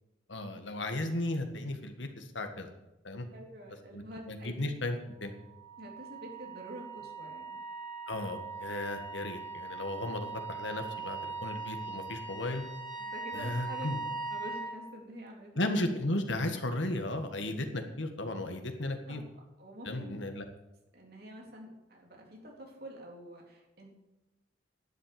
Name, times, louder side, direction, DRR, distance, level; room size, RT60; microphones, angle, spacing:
voice 1, 0.3-2.7 3.0-3.3 3.9-5.0 5.2-5.3 8.1-12.6 13.3-14.0 15.6-19.2 19.9-20.5, left 1 dB, 85° left, 6 dB, 1.8 m, -35 dB
voice 2, 3.3-4.5 5.8-7.6 13.0-13.9 14.3-15.7 19.1-19.2 19.6-20.2 20.9-23.9, equal, 55° right, 0 dB, 3.6 m, -47 dB
Wind instrument woodwind instrument, 5.3-14.8, right 4 dB, 25° left, 1.7 m, -41 dB
11.5 x 7.8 x 8.6 m, 1.0 s
head